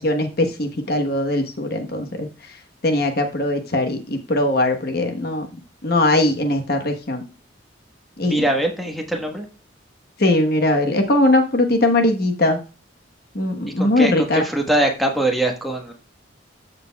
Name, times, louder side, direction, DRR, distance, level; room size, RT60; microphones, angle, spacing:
voice 1, 0.0-2.3 2.8-5.5 5.8-7.2 8.2-8.5 10.2-12.6 13.3-14.4, left 1 dB, 55° left, 5 dB, 1.1 m, -20 dB
voice 2, 8.2-9.4 13.8-15.9, right 1 dB, ahead, 2 dB, 1.3 m, -22 dB
13.5 x 6.7 x 2.3 m, 0.33 s
head